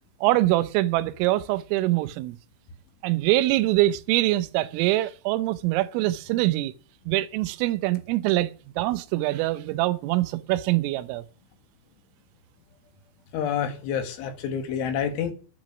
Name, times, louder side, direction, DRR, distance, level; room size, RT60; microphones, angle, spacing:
voice 1, 0.2-2.4 3.0-6.7 7.1-8.5 8.8-11.3, right 17 dB, 90° right, 3.4 m, -24 dB
voice 2, 13.3-15.3, left 8 dB, 75° left, 4.1 m, -28 dB
10.5 x 10.5 x 6.0 m
omnidirectional pair, 5.8 m